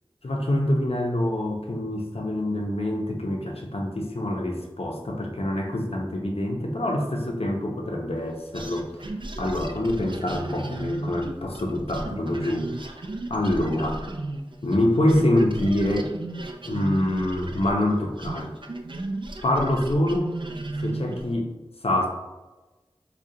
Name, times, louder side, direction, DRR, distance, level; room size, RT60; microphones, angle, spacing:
voice 1, 0.2-13.0 13.3-14.0 14.6-16.1 16.7-18.5 19.4-20.3 20.8-21.5 21.8-22.1, left 1 dB, 85° left, 1 dB, 0.6 m, -25 dB
sound 1, 8.5-14.8 15.1-21.3, right 2 dB, 55° right, 0.4 m, -35 dB
5.0 x 2.3 x 2.7 m, 1.1 s
wide cardioid pair, 40°, 10 cm